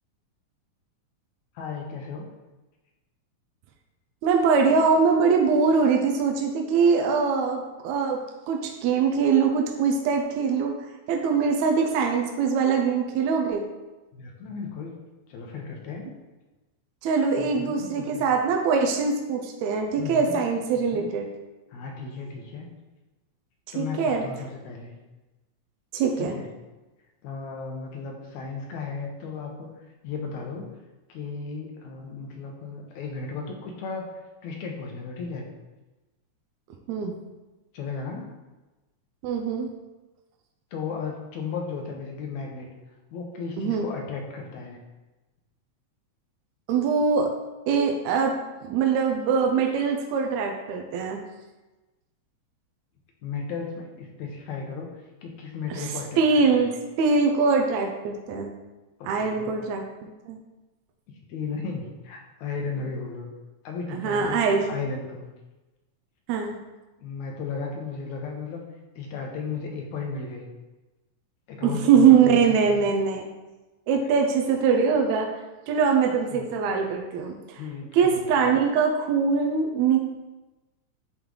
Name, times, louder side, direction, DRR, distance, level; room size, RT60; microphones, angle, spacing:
voice 1, 1.6-2.3 14.1-14.9 15.3-16.1 17.4-18.3 20.0-20.4 20.7-21.1 21.7-22.7 23.7-24.9 26.2-26.5 27.2-30.8 31.1-34.1 34.4-35.5 37.7-38.3 40.7-42.7 43.1-44.8 53.2-56.7 59.0-59.5 61.1-63.3 63.6-64.4 64.7-65.3 67.0-68.7 69.0-70.4 71.5-73.0 74.0-74.2 76.0-76.4 77.6-78.4, left 5 dB, 80° left, 1 dB, 2.2 m, -35 dB
voice 2, 4.2-8.2 8.5-10.7 11.1-13.6 17.0-21.3 23.8-24.2 25.9-26.4 36.9-37.1 39.2-39.7 43.6-43.9 46.7-47.3 47.7-48.4 48.7-51.2 55.7-55.9 56.2-58.5 59.1-60.4 64.0-64.7 66.3-66.6 71.6-73.3 73.9-75.3 75.7-77.6 77.9-80.0, right 5 dB, 80° right, 2 dB, 1.8 m, -22 dB
8.7 x 3.1 x 3.7 m, 1.1 s
omnidirectional pair, 3.4 m